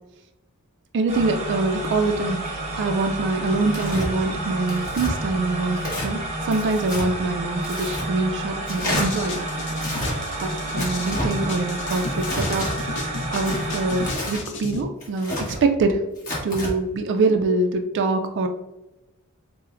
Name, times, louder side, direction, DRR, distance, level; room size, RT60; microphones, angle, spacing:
voice 1, 0.9-2.4 2.8-9.5 10.4-12.6 13.0-16.0 16.4-18.5, right 3 dB, 55° right, 6 dB, 0.3 m, -24 dB
sound 1, 1.1-14.1, right 1 dB, 30° right, 0.7 m, -30 dB
Tearing, 3.7-4.1 4.7-5.1 5.8-6.1 6.5-7.1 7.6-8.1 8.6-9.1 9.7-10.1 10.8-11.3 11.9-12.7 13.4-14.4 15.0-15.6 16.2-16.7, left 1 dB, 40° left, 1.2 m, -30 dB
sound 2, 8.9-14.8, left 2 dB, 55° left, 0.6 m, -33 dB
5.5 x 2.0 x 2.5 m, 0.99 s
head